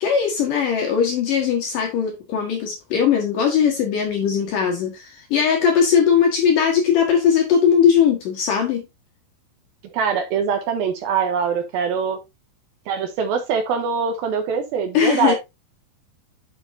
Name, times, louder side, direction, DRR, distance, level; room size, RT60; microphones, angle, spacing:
voice 1, 0.0-8.8 14.9-15.3, left 7 dB, 65° left, 2.2 m, -19 dB
voice 2, 9.9-12.2 12.9-15.3, right 6 dB, 80° right, 2.2 m, -23 dB
8.8 x 6.5 x 2.6 m
omnidirectional pair, 5.4 m